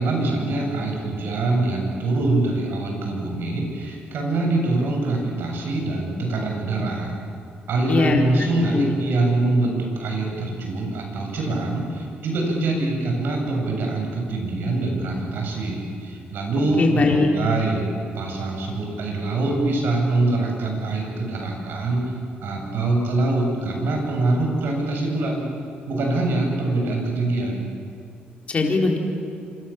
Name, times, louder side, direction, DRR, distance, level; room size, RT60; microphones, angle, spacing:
voice 1, 0.0-7.1 7.7-17.9 18.1-22.0 22.4-25.4 25.9-27.7, right 2 dB, 70° right, 0 dB, 7.7 m, -24 dB
voice 2, 7.9-8.2 8.7-8.9 16.8-17.3 28.5-29.0, left 3 dB, 35° left, 2 dB, 4.2 m, -20 dB
27.5 x 26.5 x 7.4 m, 2.5 s
cardioid pair, 115°, 4 cm